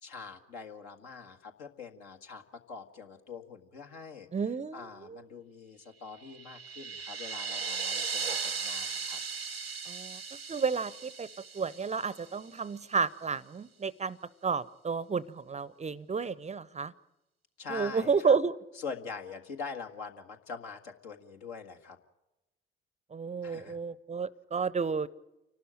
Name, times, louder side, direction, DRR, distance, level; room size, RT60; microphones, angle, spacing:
voice 1, 0.0-4.3 4.7-9.2 17.6-18.4 18.7-22.0 23.4-23.8, left 5 dB, 65° left, 4 dB, 1.7 m, -44 dB
voice 2, 4.3-5.2 9.9-10.2 10.5-11.3 11.5-14.2 14.4-16.9 17.7-18.5 23.1-25.1, right 5 dB, 25° right, 21 dB, 0.7 m, -31 dB
sound 1, 6.2-12.4, right 5 dB, 90° right, 0.7 m, -37 dB
29.5 x 12.5 x 8.8 m, 0.99 s
figure-of-eight pair, 45°, 29 cm